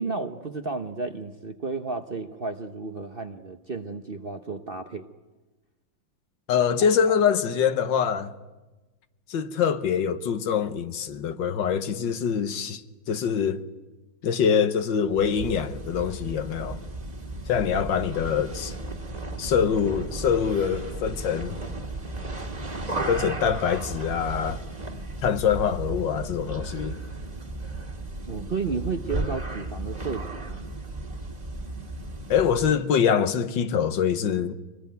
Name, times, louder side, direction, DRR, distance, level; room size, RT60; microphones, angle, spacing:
voice 1, 0.0-5.1 6.8-7.2 28.3-30.6, right 4 dB, 40° right, 0.9 m, -32 dB
voice 2, 6.5-8.3 9.3-12.8 13.1-13.7 14.2-16.8 17.5-18.7 19.4-21.6 22.9-24.6 25.2-27.0 32.3-34.5, left 7 dB, 75° left, 1.8 m, -24 dB
sound 1, 15.1-32.8, right 2 dB, 20° right, 1.9 m, -35 dB
25.0 x 20.0 x 9.3 m
omnidirectional pair, 2.0 m